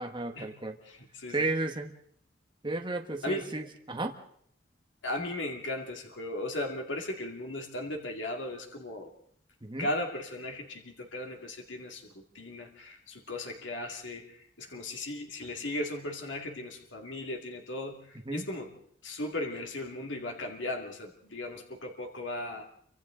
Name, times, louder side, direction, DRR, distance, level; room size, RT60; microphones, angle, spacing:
voice 1, 0.0-0.8 1.3-1.9 2.6-4.1 9.6-9.9 18.3-18.4, right 2 dB, 25° right, 4 dB, 1.4 m, -33 dB
voice 2, 0.9-1.5 3.2-3.5 5.0-9.1 9.8-18.7 19.0-22.6, left 1 dB, 80° left, 2 dB, 2.5 m, -37 dB
29.0 x 25.0 x 3.9 m, 0.64 s
head